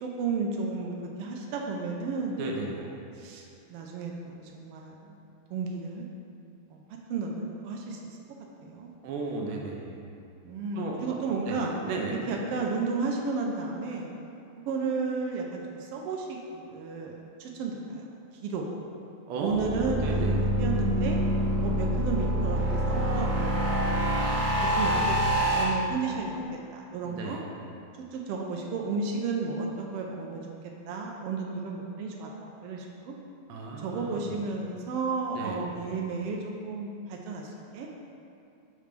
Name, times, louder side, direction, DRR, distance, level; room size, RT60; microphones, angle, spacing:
voice 1, 0.0-2.9 3.2-5.2 5.5-6.1 6.7-6.8 7.1-8.0 8.6-8.9 10.4-11.7 12.3-14.1 14.7-17.1 17.4-18.1 18.4-18.6 19.3-20.3 20.6-21.2 21.6-26.4 26.7-27.4 28.1-30.4 30.9-32.3 32.6-33.1 33.8-36.4 36.6-37.9, right 4 dB, 90° right, 0 dB, 1.3 m, -33 dB
voice 2, 2.4-2.9 9.0-10.0 10.8-11.0 11.5-12.2 19.3-20.4 27.0-27.4 33.5-34.3 35.3-35.6, right 3 dB, 75° right, -1 dB, 1.8 m, -34 dB
sound 1, 19.5-25.6, right 1 dB, 40° right, 0.9 m, -26 dB
7.7 x 3.2 x 5.1 m, 2.6 s
omnidirectional pair, 3.4 m